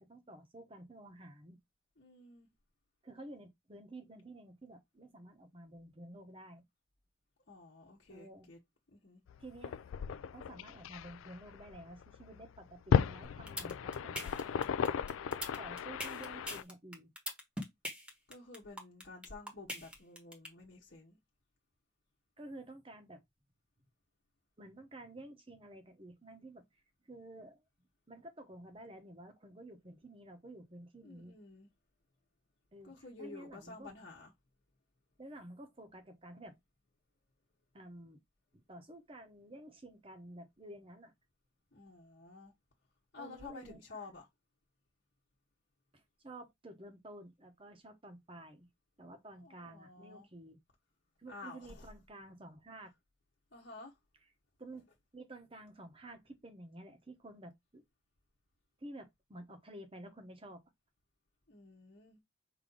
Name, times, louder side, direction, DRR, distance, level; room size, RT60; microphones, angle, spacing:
voice 1, 0.0-1.6 3.0-6.6 8.1-8.5 9.4-9.9 10.3-14.6 15.6-17.1 22.4-23.2 24.6-26.6 27.0-27.6 28.1-31.4 32.7-33.9 35.2-36.6 37.7-38.2 38.5-41.1 43.2-44.1 45.9-48.7 49.0-50.6 51.2-52.9 54.2-54.3 54.6-54.8 55.1-57.8 58.8-60.6, right 1 dB, 25° right, 0.9 m, -51 dB
voice 2, 2.0-2.5 7.5-8.6 8.9-9.2 18.3-21.2 31.0-31.7 32.8-34.3 41.7-42.5 43.1-44.3 49.4-50.3 51.3-51.8 53.5-53.9 61.5-62.2, left 3 dB, 55° left, 1.0 m, -51 dB
sound 1, 9.3-16.6, left 7 dB, 85° left, 0.3 m, -36 dB
sound 2, 13.2-20.5, equal, 5° right, 1.0 m, -41 dB
4.9 x 2.8 x 3.8 m
head